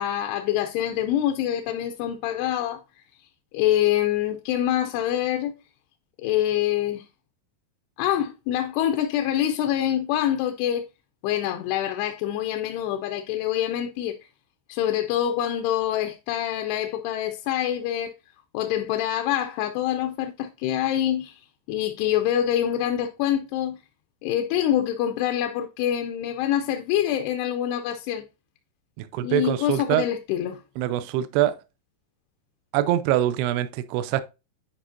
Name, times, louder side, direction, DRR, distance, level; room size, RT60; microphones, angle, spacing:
voice 1, 0.0-2.8 3.5-5.5 6.2-7.1 8.0-10.9 11.2-14.2 14.7-18.1 18.5-21.4 21.7-23.8 24.2-28.2 29.2-30.6, left 11 dB, 80° left, 2.5 m, -25 dB
voice 2, 29.0-30.1 30.8-31.6 32.7-34.2, right 12 dB, 80° right, 2.5 m, -24 dB
10.0 x 4.8 x 2.5 m
omnidirectional pair, 4.9 m